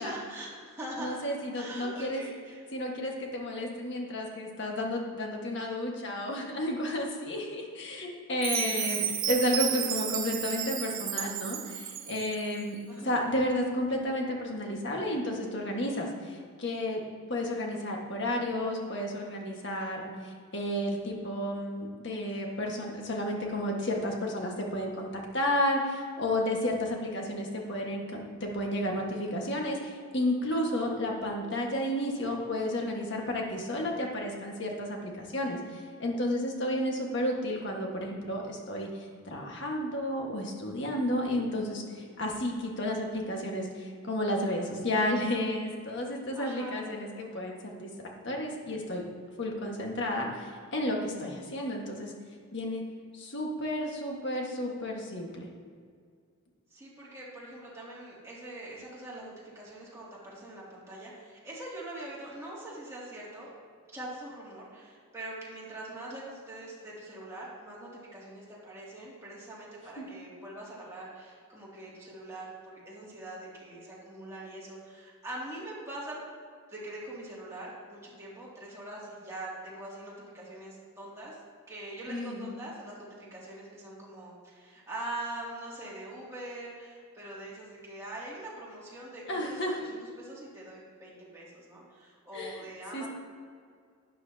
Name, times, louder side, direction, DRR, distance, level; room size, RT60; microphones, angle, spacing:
voice 1, 0.0-1.2 1.5-2.6 8.4-9.2 12.9-13.2 22.3-22.4 46.3-46.9 56.7-63.5 63.9-76.2 76.7-81.4 81.7-93.1, right 1 dB, 15° right, -7 dB, 2.5 m, -43 dB
voice 2, 1.0-2.2 2.7-12.8 13.0-17.0 17.3-38.9 39.2-47.9 48.2-49.0 49.4-52.1 52.5-52.8 53.2-55.5 70.0-70.1 82.1-82.5 89.3-89.8 92.3-92.6 92.9-93.1, left 1 dB, 55° left, 0 dB, 1.6 m, -32 dB
Chime, 8.4-12.5, right 10 dB, 70° right, 0.8 m, -32 dB
12.0 x 9.4 x 2.8 m, 2.1 s
head